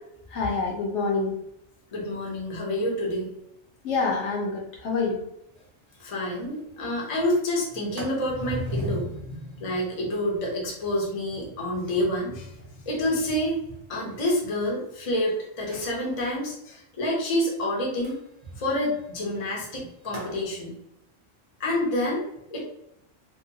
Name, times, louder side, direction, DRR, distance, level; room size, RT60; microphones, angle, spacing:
voice 1, 0.3-1.4 3.8-5.2, left 4 dB, 65° left, -1 dB, 0.9 m, -26 dB
voice 2, 1.9-3.3 6.0-9.1 9.6-12.5 12.9-13.6 13.9-18.2 18.6-20.7 21.6-22.2 22.5-22.6, left 1 dB, 35° left, -2 dB, 0.6 m, -28 dB
Sliding door, 5.6-5.7 6.0-6.1 6.4-6.7 7.1-15.1 15.5-16.0 18.0-20.4, equal, 40° right, 0.6 m, -40 dB
2.8 x 2.0 x 2.6 m, 0.80 s
omnidirectional pair, 1.4 m